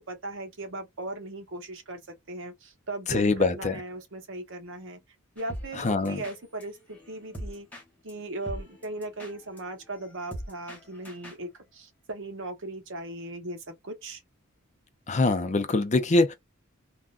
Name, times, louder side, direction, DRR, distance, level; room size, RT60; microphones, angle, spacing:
voice 1, 0.0-5.0 5.4-7.7 8.0-14.2, right 2 dB, 60° right, 0.9 m, -38 dB
voice 2, 3.1-3.7 5.8-6.2 15.1-16.3, left 3 dB, 35° left, 0.5 m, -24 dB
sound 1, 5.4-11.5, equal, 5° left, 1.2 m, -43 dB
3.6 x 2.2 x 2.3 m
head